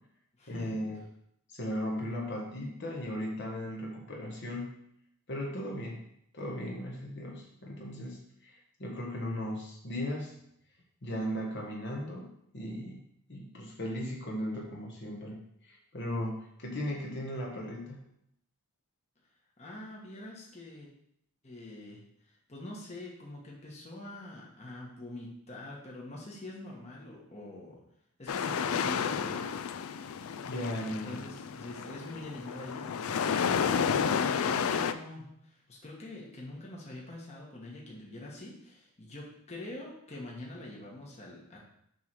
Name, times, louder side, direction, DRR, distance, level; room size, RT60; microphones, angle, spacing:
voice 1, 0.5-1.0 1.5-4.7 5.3-6.0 6.3-8.5 8.8-10.3 11.0-13.0 13.3-18.0 30.5-31.3, equal, 50° left, -1 dB, 1.3 m, -37 dB
voice 2, 19.6-20.9 21.4-27.8 28.2-29.6 30.8-41.6, left 1 dB, 30° left, -3 dB, 1.3 m, -45 dB
sound 1, 28.3-34.9, left 7 dB, 70° left, 0.4 m, -31 dB
6.9 x 3.3 x 6.0 m, 0.72 s
head